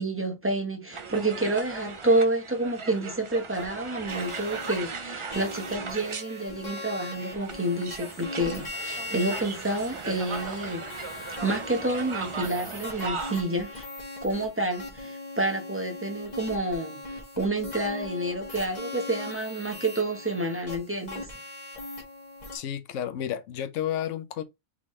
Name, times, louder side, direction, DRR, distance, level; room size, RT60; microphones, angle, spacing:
voice 1, 0.0-13.9 14.2-21.3, right 2 dB, 10° right, 0.9 m, -29 dB
sound 1, 0.9-13.4, right 4 dB, 55° right, 0.3 m, -38 dB
sound 2, 3.5-3.7 4.1-4.8 5.3-22.6, left 2 dB, 35° left, 1.4 m, -40 dB
voice 2, 22.5-24.4, left 10 dB, 70° left, 1.0 m, -31 dB
3.7 x 3.6 x 3.1 m
omnidirectional pair, 1.4 m